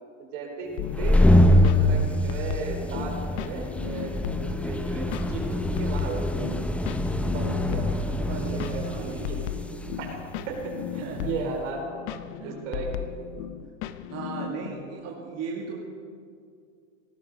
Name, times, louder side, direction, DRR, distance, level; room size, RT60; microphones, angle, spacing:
voice 1, 0.2-1.2 1.5-6.5 7.3-9.3 10.0-11.8 12.4-12.9, right 4 dB, 65° right, 1 dB, 4.5 m, -36 dB
sound 1, 0.8-14.7, left 11 dB, 60° left, 0.9 m, -36 dB
sound 2, 0.8-11.3, left 1 dB, 5° left, 0.7 m, -25 dB
voice 2, 8.3-9.5 11.0-11.4 12.4-12.8 14.1-15.8, right 5 dB, 40° right, -2 dB, 2.4 m, -37 dB
18.5 x 15.0 x 5.0 m, 2.2 s
hypercardioid pair, 110°, 39 cm